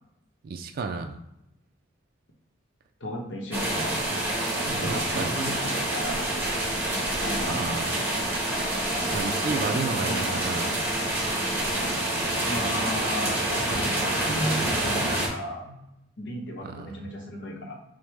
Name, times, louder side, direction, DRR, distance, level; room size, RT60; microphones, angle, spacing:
voice 1, 0.4-1.2 4.8-5.3 7.5-7.9 9.1-10.7 16.6-17.0, right 4 dB, 50° right, 4 dB, 0.3 m, -32 dB
voice 2, 3.0-4.0 4.7-6.2 7.2-7.6 9.7-10.6 12.4-15.8 16.2-17.8, equal, 65° left, -1 dB, 0.8 m, -35 dB
sound 1, 3.5-15.3, right 1 dB, 10° right, 1.3 m, -27 dB
6.0 x 2.1 x 3.4 m, 0.86 s
head